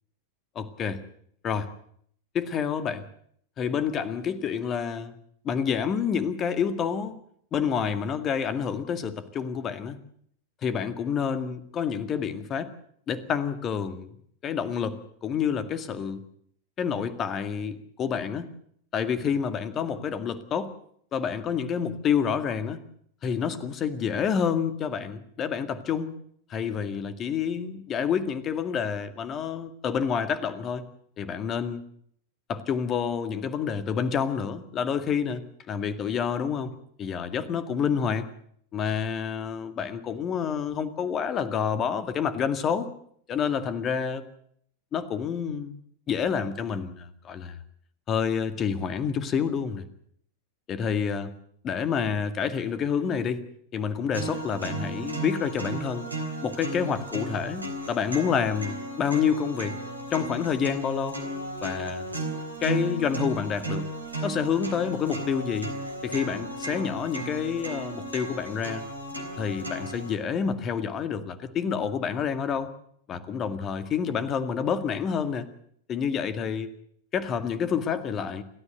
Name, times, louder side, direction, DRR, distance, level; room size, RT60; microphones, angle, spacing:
voice 1, 0.6-1.0 1.4-1.7 2.3-3.1 3.6-5.1 5.4-7.1 7.5-10.0 10.6-12.7 13.1-14.1 14.4-16.2 16.8-18.5 18.9-20.7 21.1-22.8 23.2-26.1 26.5-30.8 31.2-31.8 32.5-38.3 38.7-42.9 43.3-44.2 44.9-45.8 46.1-47.6 48.1-49.8 50.7-51.3 51.6-53.4 53.7-56.1 56.4-59.8 60.1-61.2 61.6-62.1 62.6-63.9 64.2-65.7 66.0-68.9 69.4-72.7 73.1-75.5 75.9-76.7 77.1-78.4, left 7 dB, 30° left, 12 dB, 2.0 m, -28 dB
sound 1, 54.1-70.1, right 2 dB, 80° right, 3.9 m, -35 dB
29.0 x 13.5 x 8.0 m, 0.65 s
figure-of-eight pair, 90°, 0 cm